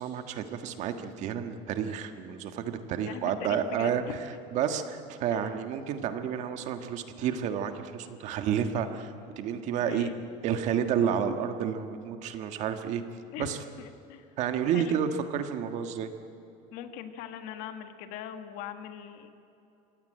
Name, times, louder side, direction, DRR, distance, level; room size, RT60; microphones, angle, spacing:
voice 1, 0.0-4.0 4.5-10.1 10.4-13.0 13.4-13.6 14.4-16.1, right 8 dB, 50° right, 7 dB, 1.6 m, -30 dB
voice 2, 3.0-4.0 5.3-5.5 9.9-10.2 13.3-14.3 14.7-15.0 16.7-19.3, left 10 dB, 65° left, 8 dB, 1.7 m, -41 dB
25.0 x 17.0 x 9.0 m, 2.8 s
cardioid pair, 165°, 15 cm